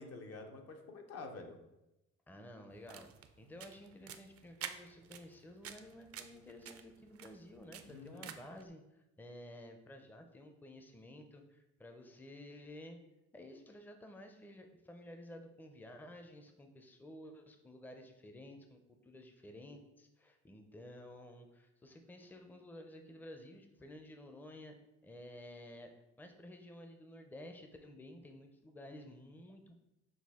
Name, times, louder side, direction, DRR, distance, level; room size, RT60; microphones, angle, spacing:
voice 1, 0.0-1.6 7.9-8.3, left 3 dB, 55° left, 4 dB, 0.7 m, -48 dB
voice 2, 2.3-3.1 3.4-13.0 13.3-24.8 25.0-25.9 26.2-29.7, left 1 dB, 5° left, 5 dB, 0.5 m, -53 dB
sound 1, 2.7-8.6, right 9 dB, 50° right, 0.4 m, -50 dB
6.2 x 2.3 x 3.5 m, 0.93 s
cardioid pair, 90°, 30 cm